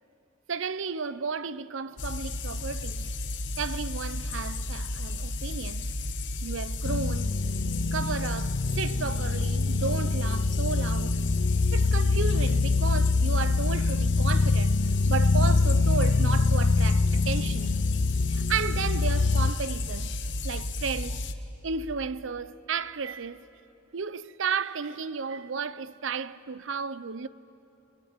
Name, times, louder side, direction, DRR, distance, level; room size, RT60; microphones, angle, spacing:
voice 1, 0.5-3.1 3.6-5.9 6.4-7.4 7.9-11.2 11.7-17.8 18.3-20.2 20.4-21.2 21.6-23.5 23.9-27.3, right 5 dB, 75° right, 0.7 m, -33 dB
sound 1, 2.0-21.3, left 2 dB, 65° left, 1.2 m, -33 dB
sound 2, 6.8-19.5, left 3 dB, 85° left, 0.5 m, -25 dB
28.0 x 22.0 x 8.9 m
head